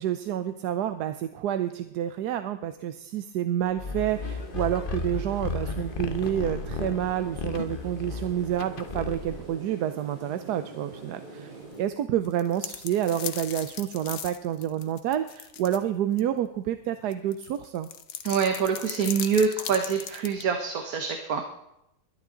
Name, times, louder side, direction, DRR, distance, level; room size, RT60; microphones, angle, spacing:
voice 1, 0.0-17.9, right 11 dB, 90° right, 10 dB, 1.2 m, -29 dB
sound 1, 3.8-9.5, left 4 dB, 40° left, 1.0 m, -34 dB
sound 2, 4.1-11.9, right 3 dB, 30° right, 6.4 m, -44 dB
sound 3, 12.2-15.8 16.2-16.3 17.1-20.4, left 9 dB, 85° left, 1.5 m, -37 dB
voice 2, 18.2-21.4, right 6 dB, 70° right, 5 dB, 1.5 m, -25 dB
21.0 x 12.0 x 3.8 m, 0.86 s
omnidirectional pair, 1.7 m